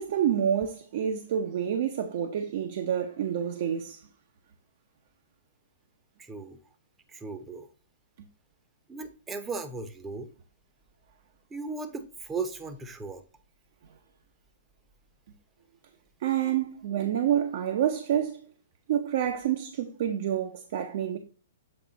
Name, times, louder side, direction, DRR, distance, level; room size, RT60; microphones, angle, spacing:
voice 1, 0.0-4.0 16.2-18.4 18.9-21.2, right 9 dB, 55° right, 0.7 m, -28 dB
voice 2, 6.2-6.6 7.1-7.7 8.9-10.3 11.5-13.2, right 4 dB, 10° right, 0.7 m, -36 dB
7.8 x 3.4 x 3.9 m
hypercardioid pair, 150°, 0 cm